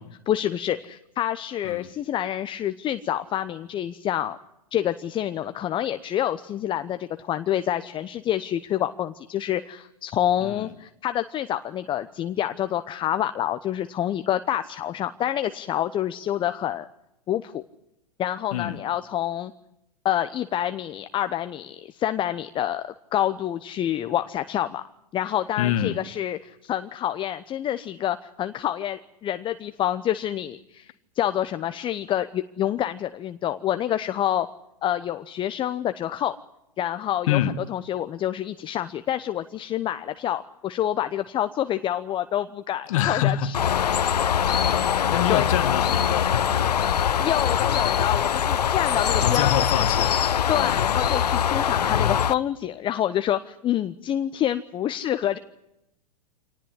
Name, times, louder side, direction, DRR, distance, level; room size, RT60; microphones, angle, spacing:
voice 1, 0.3-4.4 4.7-16.9 17.3-17.6 18.2-19.5 20.0-24.8 25.1-34.5 34.8-36.4 36.8-37.4 37.7-43.6 45.3-45.5 47.2-49.5 50.5-55.4, left 11 dB, 25° left, 0.9 m, -27 dB
voice 2, 10.4-10.7 18.5-18.8 25.6-26.0 37.3-37.6 42.9-44.1 44.6-47.1 49.1-50.2 50.6-50.8, left 11 dB, 55° left, 1.7 m, -27 dB
Bird, 43.5-52.3, left 8 dB, 75° left, 0.9 m, -22 dB
26.5 x 19.0 x 9.9 m
hypercardioid pair, 105°, 21 cm